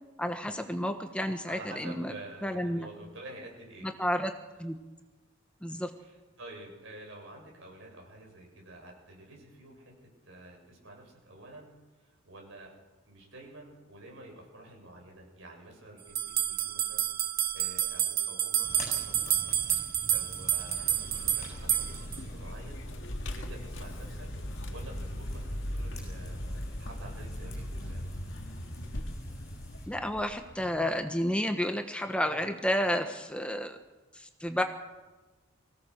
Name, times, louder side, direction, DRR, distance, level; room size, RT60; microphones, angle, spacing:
voice 1, 0.2-2.1 2.4-2.9 3.8-4.3 4.6-4.8 5.6-5.9 29.9-33.8 34.1-34.6, equal, 5° left, 6 dB, 1.2 m, -31 dB
voice 2, 1.5-3.9 5.7-11.7 12.0-12.7 13.1-17.1 17.5-19.6 20.1-22.8 23.3-24.3 24.7-28.1, right 1 dB, 70° right, 0 dB, 7.8 m, -49 dB
sound 1, 16.2-22.2, right 11 dB, 50° right, 1.0 m, -29 dB
sound 2, 18.6-29.9, left 1 dB, 35° left, 8.0 m, -47 dB
Vehicle, 20.7-31.0, equal, 65° left, 1.9 m, -39 dB
24.0 x 17.5 x 6.7 m, 1.2 s
head